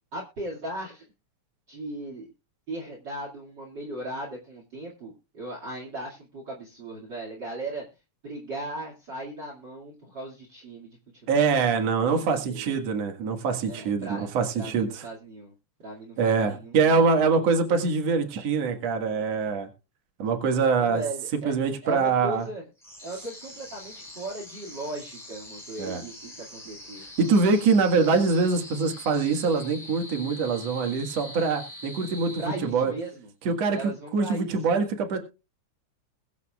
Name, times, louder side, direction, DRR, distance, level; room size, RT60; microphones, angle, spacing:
voice 1, 0.1-1.1 1.7-2.3 2.7-7.9 8.2-11.0 11.7-12.7 13.6-15.5 15.8-17.5 20.8-21.5 21.8-22.6 23.0-27.0 32.4-33.3 33.7-34.9, right 2 dB, 35° right, -1 dB, 2.7 m, -37 dB
voice 2, 11.3-15.0 16.2-19.7 20.2-21.0 21.4-22.4 25.8-26.0 27.2-32.9 33.5-33.8 34.1-35.2, right 4 dB, 60° right, 4 dB, 2.8 m, -24 dB
sound 1, 22.8-33.0, left 1 dB, ahead, 5.4 m, -44 dB
22.0 x 8.3 x 2.4 m, 0.30 s
omnidirectional pair, 3.4 m